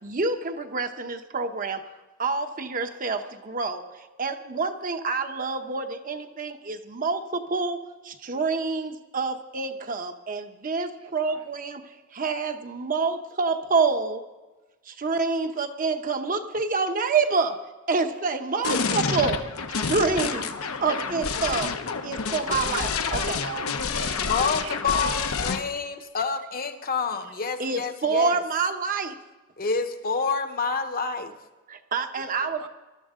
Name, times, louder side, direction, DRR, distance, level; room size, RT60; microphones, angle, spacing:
voice 1, 0.0-1.8 2.2-7.8 8.0-14.2 14.8-17.6 17.9-19.4 19.7-20.5 20.8-23.4 27.6-29.2 31.7-32.6, right 4 dB, 40° right, 1.0 m, -27 dB
voice 2, 11.0-11.5 22.6-25.3 32.4-32.7, right 5 dB, 80° right, 1.2 m, -39 dB
sound 1, 18.6-25.6, left 5 dB, 70° left, 0.9 m, -28 dB
voice 3, 24.2-25.2 25.4-28.4 29.6-31.3, left 5 dB, 40° left, 1.0 m, -28 dB
20.5 x 13.0 x 3.7 m
head